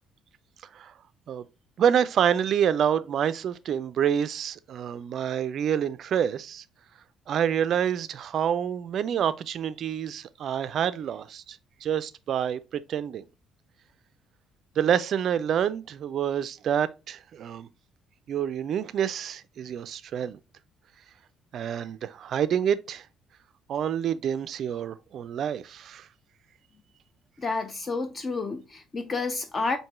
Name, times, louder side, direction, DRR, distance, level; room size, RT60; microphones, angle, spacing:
voice 1, 1.8-6.6 7.3-13.2 14.8-17.7 18.3-20.4 21.5-23.1 23.7-26.1, right 9 dB, 55° right, 0.3 m, -27 dB
voice 2, 27.4-29.8, left 3 dB, 35° left, 0.5 m, -30 dB
4.6 x 2.7 x 3.3 m
figure-of-eight pair, 50°, 0 cm